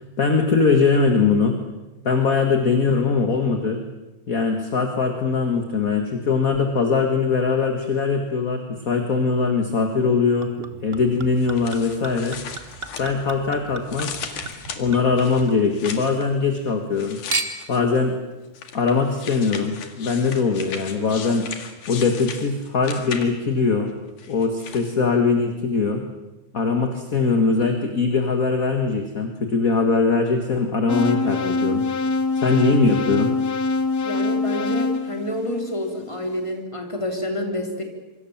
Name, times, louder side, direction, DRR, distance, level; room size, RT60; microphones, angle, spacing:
voice 1, 0.2-1.6 2.0-3.8 4.3-10.5 10.8-12.4 13.0-14.1 14.8-17.2 17.7-18.2 18.7-21.5 21.9-23.9 24.3-26.0 26.5-31.8 32.4-33.3, left 4 dB, 35° left, 4 dB, 1.7 m, -21 dB
Chink clink / Liquid, 10.4-15.9 16.3-16.9 17.3-17.8 18.6-18.7, right 3 dB, 45° right, 0.7 m, -34 dB
sound 1, 11.4-13.5 13.8-16.2 16.9-18.0 18.5-23.6 24.2-24.9, left 7 dB, 70° left, 3.5 m, -37 dB
sound 2, 30.9-36.0, left 3 dB, 50° left, 1.2 m, -24 dB
voice 2, 34.0-37.8, left 1 dB, 10° left, 2 dB, 3.6 m, -28 dB
26.0 x 25.0 x 7.4 m, 1.0 s
omnidirectional pair, 3.7 m